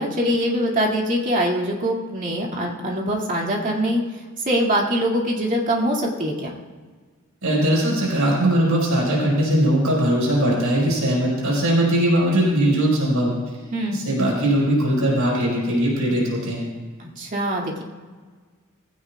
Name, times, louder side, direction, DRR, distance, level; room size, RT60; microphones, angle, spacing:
voice 1, 0.0-4.0 4.5-6.6 13.7-14.0 17.0-17.8, equal, 40° right, -1 dB, 2.4 m, -23 dB
voice 2, 7.4-13.3 13.9-16.6, right 1 dB, 80° right, -3 dB, 4.9 m, -20 dB
19.5 x 16.0 x 2.4 m, 1.5 s
head